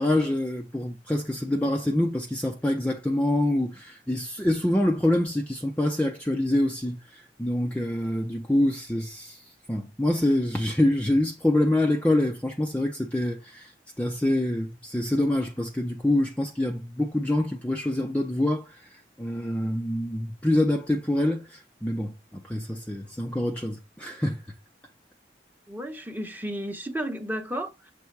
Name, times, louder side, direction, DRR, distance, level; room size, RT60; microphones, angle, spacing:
voice 1, 0.0-9.4 9.7-13.7 14.0-18.7 19.2-24.4, left 1 dB, 10° left, 0.6 m, -26 dB
voice 2, 25.7-27.9, equal, 10° right, 1.0 m, -33 dB
7.0 x 3.4 x 4.6 m
head